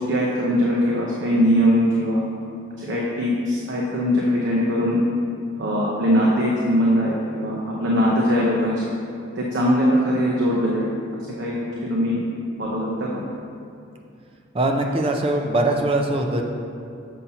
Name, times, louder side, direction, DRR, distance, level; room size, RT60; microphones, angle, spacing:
voice 1, 0.0-2.2 2.8-5.0 5.6-8.9 9.4-10.8 11.4-12.2 12.6-13.2, equal, 60° right, -5 dB, 0.7 m, -21 dB
voice 2, 14.5-16.4, right 2 dB, 25° right, 2 dB, 0.4 m, -21 dB
7.2 x 2.8 x 5.5 m, 2.5 s
head